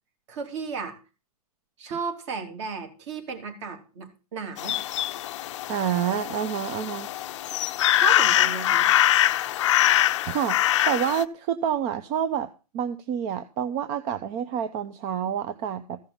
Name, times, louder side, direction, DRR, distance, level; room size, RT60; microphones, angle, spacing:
voice 1, 0.3-1.0 1.8-4.8 7.9-8.9, right 5 dB, 45° right, 6 dB, 3.4 m, -34 dB
sound 1, 4.6-11.2, left 13 dB, 50° left, 0.6 m, -23 dB
voice 2, 5.7-7.1 10.2-10.6 10.9-16.0, right 9 dB, 25° right, 12 dB, 0.6 m, -28 dB
15.0 x 5.6 x 7.2 m, 0.33 s
hypercardioid pair, 160°, 20 cm